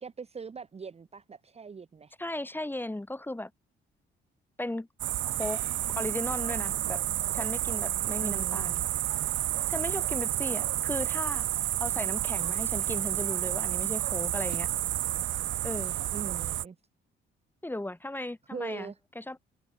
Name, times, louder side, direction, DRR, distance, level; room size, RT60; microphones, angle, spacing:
voice 1, 0.0-2.2 8.2-8.7 16.1-16.8 18.5-19.0, right 5 dB, 30° right, 1.2 m, -41 dB
voice 2, 2.2-3.5 4.6-4.9 5.3-5.6 6.0-7.0 7.3-8.8 9.7-11.5 11.8-14.7 15.6-16.0 17.6-19.4, left 1 dB, 10° left, 4.2 m, -36 dB
sound 1, 5.0-16.6, right 14 dB, 75° right, 0.8 m, -30 dB
cardioid pair, 90°, 20 cm